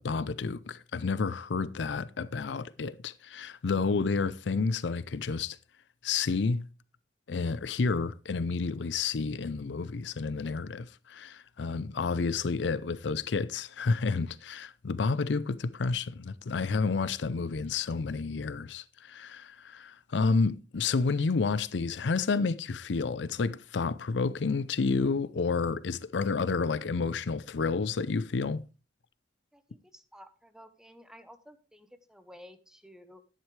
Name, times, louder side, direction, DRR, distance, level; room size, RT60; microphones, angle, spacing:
voice 1, 0.0-5.6 6.0-6.7 7.3-28.6, left 4 dB, 80° left, 0.5 m, -30 dB
voice 2, 29.5-33.2, equal, 5° right, 1.0 m, -53 dB
12.0 x 10.5 x 3.3 m
head